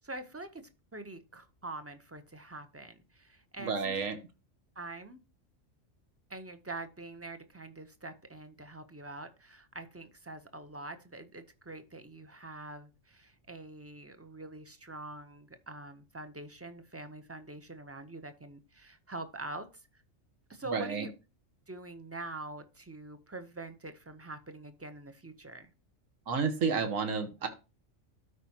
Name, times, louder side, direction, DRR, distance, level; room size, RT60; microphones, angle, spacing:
voice 1, 0.0-0.6 0.9-4.0 4.8-5.2 6.3-19.7 19.9-20.0 20.5-21.1 21.7-25.7, right 2 dB, 15° right, 9 dB, 0.5 m, -44 dB
voice 2, 3.6-4.2 20.7-21.1 26.3-27.5, right 5 dB, 80° right, 7 dB, 1.6 m, -31 dB
13.0 x 4.9 x 2.8 m, 0.29 s
omnidirectional pair, 1.3 m